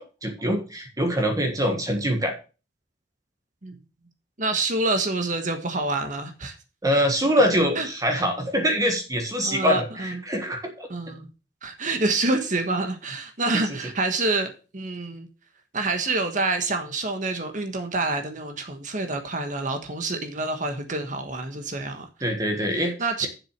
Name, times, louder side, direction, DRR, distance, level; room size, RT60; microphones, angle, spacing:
voice 1, 0.0-2.3 6.8-10.9 13.5-13.6 22.2-22.9, equal, 20° right, 5 dB, 1.5 m, -24 dB
voice 2, 4.4-6.6 6.9-7.0 7.7-7.9 9.4-10.2 10.9-11.3 11.6-15.3 15.7-22.1 22.7-23.3, right 3 dB, 45° right, 6 dB, 1.3 m, -27 dB
7.5 x 6.4 x 6.7 m, 0.34 s
head